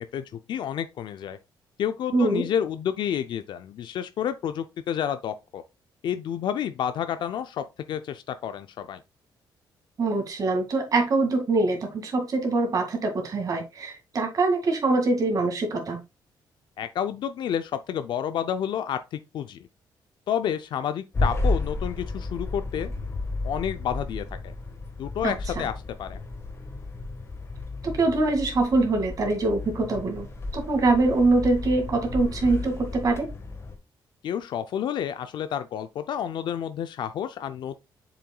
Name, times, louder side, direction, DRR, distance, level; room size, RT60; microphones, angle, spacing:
voice 1, 0.1-1.4 1.8-5.6 6.0-9.0 16.8-19.6 20.3-22.9 23.4-24.5 25.0-25.7 26.0-26.2 34.2-37.8, left 9 dB, 70° left, 0.5 m, -30 dB
voice 2, 2.1-2.5 10.0-16.0 25.2-25.6 27.8-30.3 30.5-33.3, right 3 dB, 45° right, 2.2 m, -24 dB
sound 1, 21.1-33.8, left 2 dB, 30° left, 1.5 m, -33 dB
7.1 x 5.7 x 2.3 m
cardioid pair, 115°, 8 cm